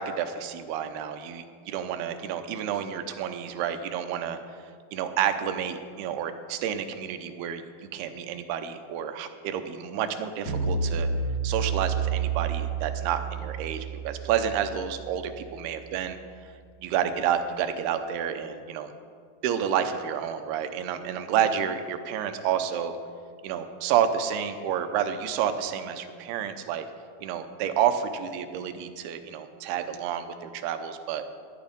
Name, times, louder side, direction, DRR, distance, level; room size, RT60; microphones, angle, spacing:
voice 1, 0.0-4.4 4.9-7.6 7.9-11.1 11.4-16.2 16.8-18.9 19.4-22.9 23.4-26.9 27.2-31.2, right 9 dB, 85° right, 8 dB, 2.7 m, -29 dB
sound 1, 10.5-15.8, right 5 dB, 45° left, 2.1 m, -30 dB
11.5 x 11.5 x 5.1 m, 2.1 s
omnidirectional pair, 4.5 m